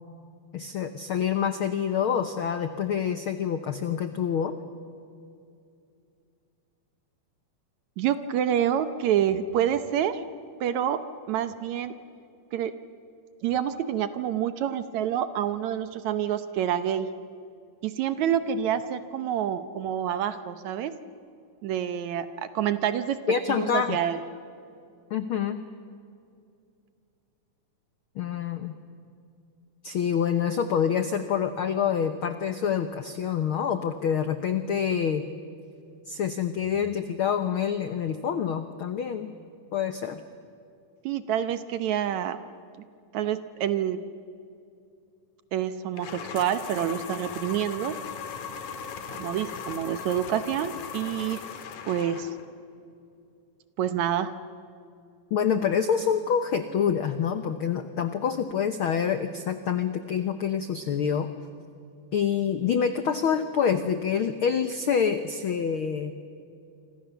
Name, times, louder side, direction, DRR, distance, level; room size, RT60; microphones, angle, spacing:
voice 1, 0.5-4.5 23.3-24.0 25.1-25.7 28.1-28.8 29.8-35.2 36.1-39.3 39.7-40.2 55.3-61.3 62.1-66.1, left 7 dB, 90° left, 10 dB, 1.1 m, -27 dB
voice 2, 8.0-10.2 10.6-11.0 11.3-11.9 12.5-12.7 13.4-17.1 17.8-21.0 21.6-23.2 23.5-24.2 41.0-42.4 43.1-44.0 45.5-48.0 49.2-51.4 51.9-52.3 53.8-54.4, right 10 dB, 70° right, 12 dB, 2.0 m, -27 dB
sound 1, 46.0-52.5, left 6 dB, 70° left, 3.0 m, -38 dB
28.0 x 26.0 x 7.0 m, 2.5 s
omnidirectional pair, 3.8 m